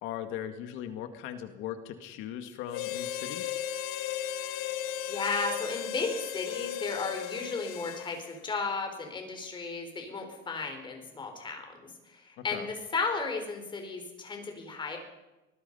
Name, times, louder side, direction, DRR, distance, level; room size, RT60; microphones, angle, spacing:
voice 1, 0.0-3.6 12.4-12.7, left 10 dB, 70° left, 8 dB, 2.1 m, -39 dB
Harmonica, 2.7-8.4, left 11 dB, 85° left, 1.4 m, -36 dB
voice 2, 4.6-15.0, left 4 dB, 20° left, 4 dB, 4.9 m, -34 dB
24.5 x 19.5 x 5.6 m, 1.0 s
cardioid pair, 155°, 21 cm